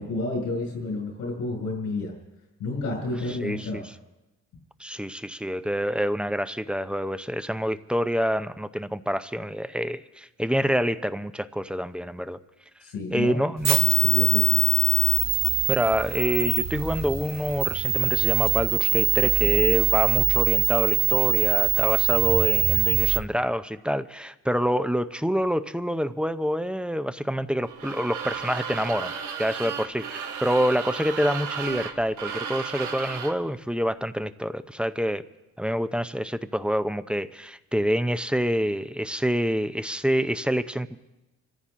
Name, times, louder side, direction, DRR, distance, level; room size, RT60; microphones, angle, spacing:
voice 1, 0.0-2.1 2.6-3.8 12.8-13.4 13.8-14.6, left 2 dB, 85° left, -1 dB, 5.9 m, -30 dB
voice 2, 3.4-3.8 4.8-12.4 13.1-13.9 15.7-29.1 29.4-35.2 35.6-41.0, equal, 5° right, 12 dB, 0.6 m, -27 dB
sound 1, 13.6-23.2, right 11 dB, 60° right, 1.8 m, -22 dB
sound 2, 27.7-33.4, right 7 dB, 85° right, 1.5 m, -34 dB
26.5 x 14.5 x 3.7 m, 1.0 s
cardioid pair, 90°, 30 cm